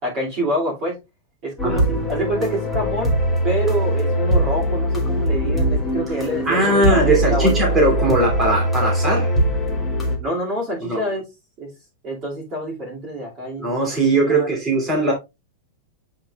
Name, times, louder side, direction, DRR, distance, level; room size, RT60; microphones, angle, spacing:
voice 1, 0.0-1.0 1.4-3.1 3.4-7.5 10.2-11.2 11.6-11.7 12.0-13.7 14.3-14.5, right 1 dB, 30° right, 2.4 m, -26 dB
sound 1, 1.6-10.2, equal, 5° left, 1.5 m, -21 dB
voice 2, 6.4-9.3 10.8-11.0 13.6-15.1, right 2 dB, 15° right, 2.6 m, -19 dB
7.7 x 5.1 x 2.3 m
supercardioid pair, 170°, 0 cm